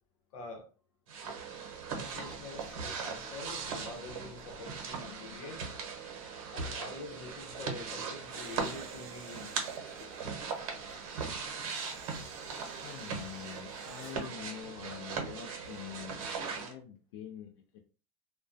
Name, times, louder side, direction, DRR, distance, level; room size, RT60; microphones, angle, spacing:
voice 1, 0.3-0.7 1.9-5.7 6.5-9.5, left 3 dB, 80° left, 0.8 m, -46 dB
sound 1, 1.1-16.7, right 5 dB, 75° right, 0.8 m, -39 dB
voice 2, 2.5-2.8 5.0-5.4 8.2-8.3 9.9-10.4 11.2-11.3 11.7-11.8 12.8-17.8, left 10 dB, 60° left, 0.4 m, -47 dB
Camera, 8.3-10.2 11.6-14.2, right 5 dB, 50° right, 0.5 m, -51 dB
2.2 x 2.2 x 2.5 m
supercardioid pair, 180°, 18 cm